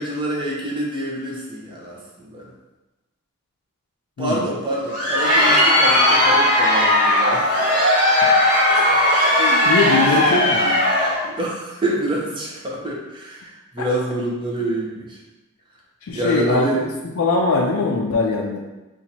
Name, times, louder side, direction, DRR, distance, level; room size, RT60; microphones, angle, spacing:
voice 1, 0.0-2.5 4.2-7.6 10.0-10.2 11.2-15.2 16.1-16.9, right 1 dB, 25° right, -3 dB, 0.7 m, -26 dB
voice 2, 4.2-4.5 8.7-10.8 13.8-13.9 16.0-16.9 17.2-18.6, left 3 dB, 70° left, 0 dB, 0.4 m, -22 dB
Crowd, 4.7-11.3, left 1 dB, 40° right, 1.1 m, -17 dB
2.8 x 2.5 x 4.1 m, 1.1 s
head